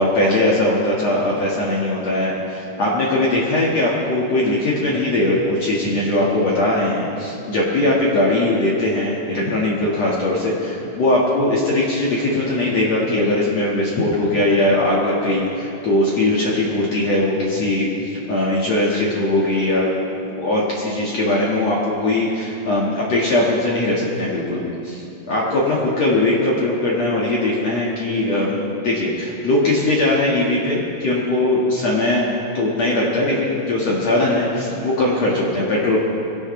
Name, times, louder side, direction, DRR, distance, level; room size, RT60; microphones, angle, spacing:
voice 1, 0.0-19.9 20.3-32.3 32.5-36.0, left 1 dB, 65° left, -5 dB, 1.7 m, -20 dB
22.5 x 16.5 x 3.3 m, 2.8 s
omnidirectional pair, 5.9 m